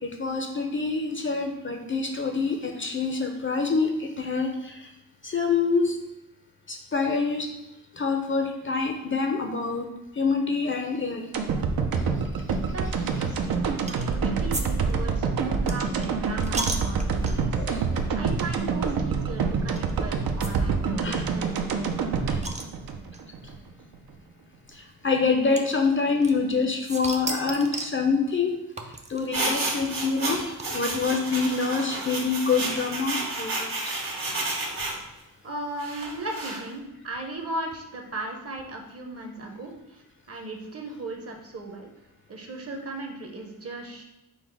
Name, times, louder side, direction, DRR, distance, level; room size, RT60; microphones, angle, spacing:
voice 1, 0.0-4.7 5.2-6.0 6.7-7.5 8.0-9.9 10.2-11.3 17.6-17.8 21.0-21.2 25.0-28.6 29.1-33.7, left 4 dB, 35° left, 3 dB, 0.4 m, -26 dB
sound 1, 11.3-23.6 23.9-24.0, right 5 dB, 85° right, 0.5 m, -27 dB
voice 2, 12.7-17.5 18.2-21.9 35.4-40.0 40.3-41.9 42.3-44.0, right 2 dB, 45° right, 2 dB, 0.7 m, -37 dB
sound 2, 13.9-14.2 14.5-14.6 14.9-17.6 18.2-18.4 18.6-18.7 19.8-19.9 20.4-20.5 20.8-20.9 21.1-21.2 21.6-23.2 24.1-24.2 25.6-26.6 26.9-28.0 28.8-31.0, right 2 dB, 20° right, 0.4 m, -35 dB
sound 3, 29.3-35.0 35.8-36.6, right 2 dB, 70° right, 1.7 m, -31 dB
5.5 x 2.0 x 4.5 m, 0.92 s
wide cardioid pair, 120°, 35 cm